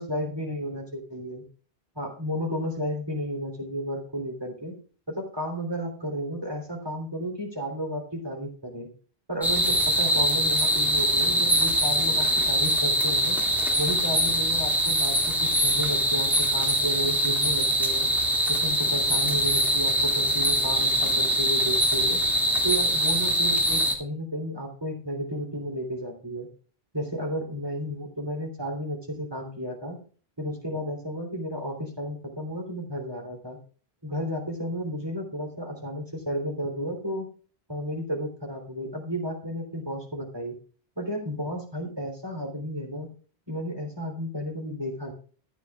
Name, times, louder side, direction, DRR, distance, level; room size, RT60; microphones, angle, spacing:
voice 1, 0.0-1.4 2.0-4.8 5.1-8.9 9.3-13.4 13.8-18.1 18.5-22.2 22.6-26.5 26.9-30.0 30.4-33.6 34.0-37.3 37.7-40.6 41.0-43.1 43.5-45.1, equal, 25° right, 0 dB, 3.5 m, -32 dB
sound 1, 9.4-23.9, equal, ahead, 2.3 m, -23 dB
14.5 x 9.9 x 2.4 m, 0.41 s
omnidirectional pair, 1.1 m